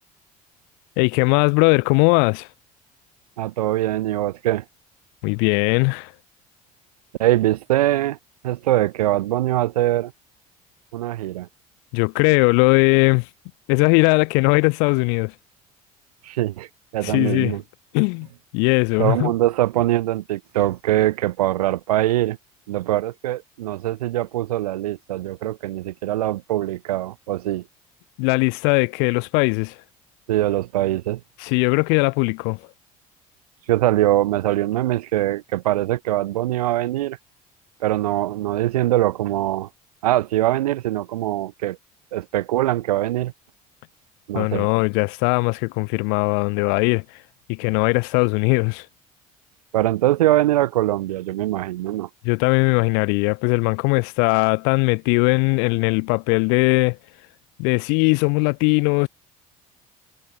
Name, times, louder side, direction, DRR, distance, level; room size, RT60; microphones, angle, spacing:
voice 1, 1.0-2.5 5.2-6.1 11.9-13.3 13.7-15.3 17.0-17.6 17.9-18.3 18.5-19.3 28.2-29.7 31.4-32.6 44.3-47.0 47.5-48.8 52.2-57.0 57.6-59.1, left 40 dB or more, 75° left, 0.9 m, -19 dB
voice 2, 3.4-4.6 7.2-8.2 8.4-10.1 10.9-11.5 16.2-16.7 16.9-17.6 19.0-22.4 22.7-27.6 30.3-31.2 33.7-37.2 37.8-39.7 40.0-41.8 42.1-43.3 44.3-44.7 49.7-52.1, right 15 dB, 85° right, 2.5 m, -22 dB
hypercardioid pair, 65°, 19 cm